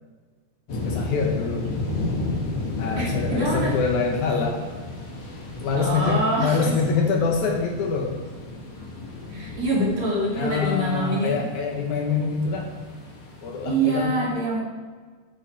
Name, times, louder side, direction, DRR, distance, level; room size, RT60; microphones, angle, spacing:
sound 1, 0.7-14.0, left 3 dB, 50° left, 1.7 m, -32 dB
voice 1, 0.9-1.7 2.8-4.6 5.6-8.1 10.3-12.7 13.4-14.2, left 5 dB, 70° left, 1 dB, 2.3 m, -25 dB
voice 2, 3.0-3.7 5.8-6.7 9.3-11.4 13.6-14.6, right 1 dB, 45° right, -5 dB, 2.9 m, -25 dB
9.4 x 7.6 x 4.6 m, 1.5 s
omnidirectional pair, 3.8 m